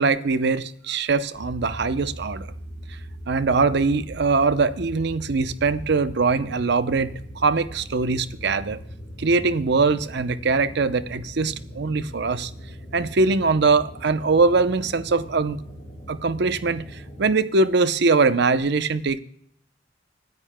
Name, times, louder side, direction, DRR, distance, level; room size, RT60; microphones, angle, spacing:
voice 1, 0.0-2.5 3.3-7.1 7.4-8.8 9.2-12.5 12.9-15.6 16.1-19.2, right 4 dB, 65° right, 0.7 m, -22 dB
sound 1, 1.3-17.4, equal, 30° left, 5.2 m, -40 dB
25.0 x 9.6 x 2.2 m
head